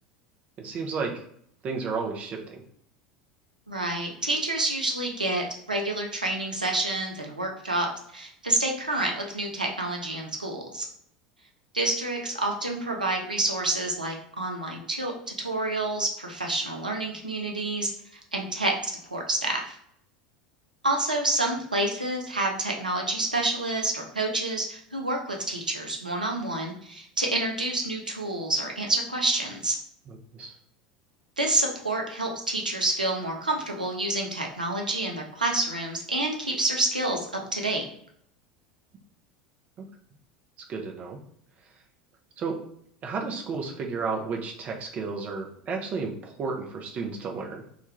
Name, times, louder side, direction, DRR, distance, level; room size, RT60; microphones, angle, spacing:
voice 1, 0.6-1.1 1.6-2.6 30.1-30.5 39.8-39.9 40.7-41.2 42.4-42.6 43.0-47.6, right 4 dB, 35° right, 1 dB, 0.5 m, -32 dB
voice 2, 3.7-10.9 11.7-19.8 20.8-29.8 31.4-37.8, right 2 dB, 85° right, 1 dB, 0.5 m, -28 dB
2.4 x 2.2 x 3.0 m, 0.67 s
figure-of-eight pair, 75°, 4 cm